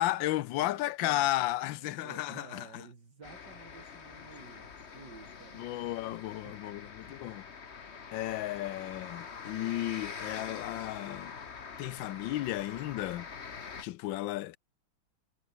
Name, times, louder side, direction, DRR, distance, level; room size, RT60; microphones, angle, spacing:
voice 1, 0.0-2.7 5.5-7.4 8.1-11.3 11.8-13.3 13.8-14.6, left 15 dB, 70° left, 1.3 m, -33 dB
voice 2, 0.6-1.3 1.6-6.2 6.5-6.7, right 5 dB, 50° right, 3.7 m, -53 dB
sound 1, 3.2-13.8, left 6 dB, 35° left, 1.4 m, -45 dB
omnidirectional pair, 2.3 m